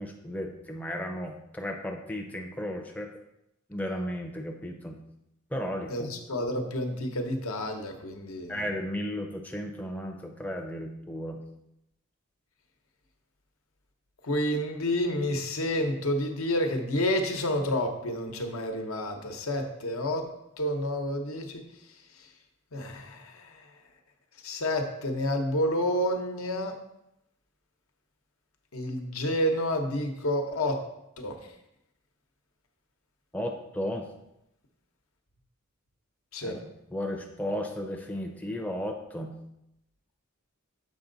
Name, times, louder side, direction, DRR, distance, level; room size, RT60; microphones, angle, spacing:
voice 1, 0.0-3.1 3.7-5.0 5.5-6.1 8.5-11.4 33.3-34.1 36.4-39.4, equal, 5° left, 2 dB, 0.5 m, -34 dB
voice 2, 5.9-8.6 14.2-20.3 20.6-21.6 22.7-23.3 24.4-26.7 28.7-30.8 31.2-31.3 36.3-36.6, left 1 dB, 80° left, 4 dB, 1.0 m, -29 dB
7.2 x 5.3 x 3.9 m, 0.85 s
head